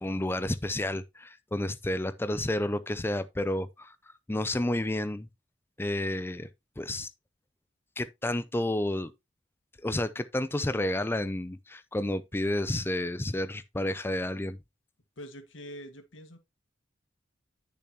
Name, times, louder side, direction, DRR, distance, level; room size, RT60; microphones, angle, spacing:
voice 1, 0.0-3.9 4.3-5.3 5.8-6.5 6.8-7.1 8.0-9.1 9.8-14.6, left 1 dB, 10° left, 0.5 m, -30 dB
voice 2, 15.2-16.4, equal, 85° left, 1.7 m, -44 dB
10.0 x 6.8 x 2.8 m
head